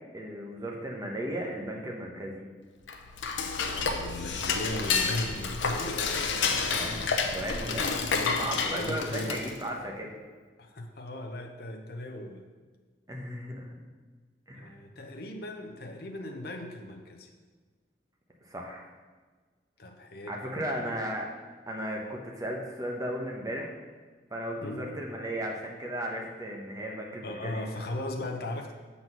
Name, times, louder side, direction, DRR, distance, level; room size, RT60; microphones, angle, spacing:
voice 1, 0.1-2.5 6.7-7.0 7.3-7.9 8.3-10.2 13.1-13.8 14.5-14.7 18.4-18.9 20.3-21.3 21.7-23.7 24.3-27.6, equal, 20° right, -1 dB, 1.0 m, -35 dB
Dishes pots and pans / Cutlery silverware, 2.8-9.7, left 4 dB, 90° left, 0.7 m, -30 dB
voice 2, 3.9-7.1 8.6-9.3 10.6-12.4 14.6-17.3 19.8-20.4 20.7-20.9 24.6-24.9 27.2-28.7, left 1 dB, 55° left, 3 dB, 0.7 m, -38 dB
7.4 x 4.2 x 6.0 m, 1.4 s
head